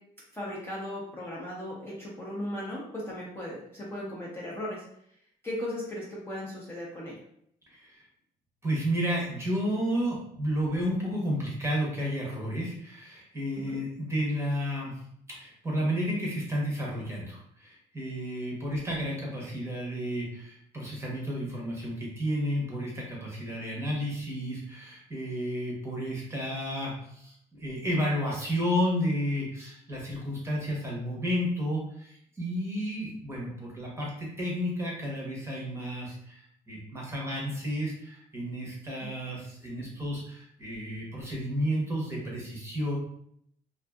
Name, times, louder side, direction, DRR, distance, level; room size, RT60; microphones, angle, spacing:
voice 1, 0.3-4.8 5.4-7.2 13.7-13.8 39.0-39.1, left 1 dB, 15° left, -6 dB, 0.7 m, -37 dB
voice 2, 7.7-8.0 8.6-15.0 15.3-43.0, equal, 15° right, -3 dB, 0.8 m, -32 dB
2.5 x 2.4 x 2.3 m, 0.70 s
cardioid pair, 110°, 17 cm